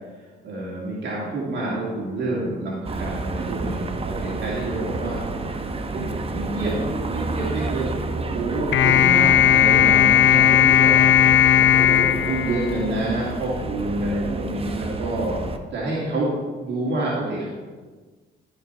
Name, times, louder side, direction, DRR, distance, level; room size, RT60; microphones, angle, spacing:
voice 1, 0.4-5.2 5.9-6.8 7.1-11.0 11.3-15.4 15.7-17.5, right 2 dB, 65° right, -6 dB, 2.5 m, -28 dB
sound 1, 2.8-15.6, right 3 dB, 30° right, 0.9 m, -30 dB
sound 2, 8.7-13.2, left 10 dB, 75° left, 0.6 m, -17 dB
13.5 x 5.3 x 4.6 m, 1.4 s
cardioid pair, 90°, 20 cm